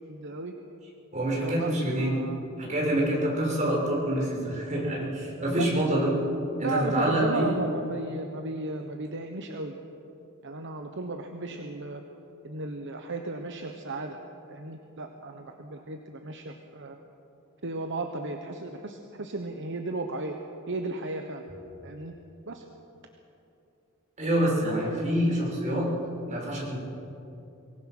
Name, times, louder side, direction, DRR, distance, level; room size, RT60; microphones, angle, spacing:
voice 1, 0.1-0.5 1.4-2.5 5.4-5.7 6.6-9.7 10.4-12.0 12.4-14.2 14.5-17.0 17.6-20.4 20.7-21.4 21.8-22.1 22.5-22.6, right 2 dB, 60° right, 4 dB, 1.1 m, -35 dB
voice 2, 1.1-2.3 2.6-6.2 6.6-7.5 24.2-25.9 26.3-26.7, right 1 dB, 35° right, -4 dB, 6.3 m, -26 dB
23.5 x 19.5 x 6.1 m, 2.8 s
head